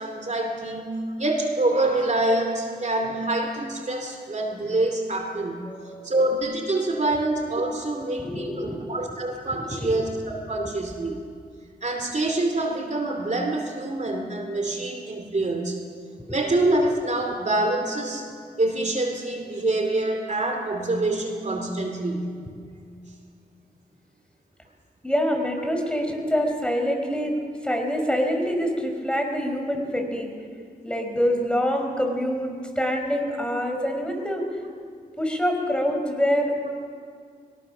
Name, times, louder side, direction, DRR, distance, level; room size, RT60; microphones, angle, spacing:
voice 1, 0.0-5.6 6.0-11.2 11.8-15.8 16.3-18.3 18.6-22.3, right 2 dB, 45° right, 3 dB, 2.7 m, -26 dB
voice 2, 5.7-6.2 8.2-8.8 9.7-9.8 16.2-16.4 22.4-22.5 25.0-27.3 27.6-30.3 30.8-34.5 35.2-36.5, equal, 5° left, 3 dB, 4.7 m, -25 dB
22.5 x 19.0 x 6.2 m, 2.1 s
cardioid pair, 50°, 17 cm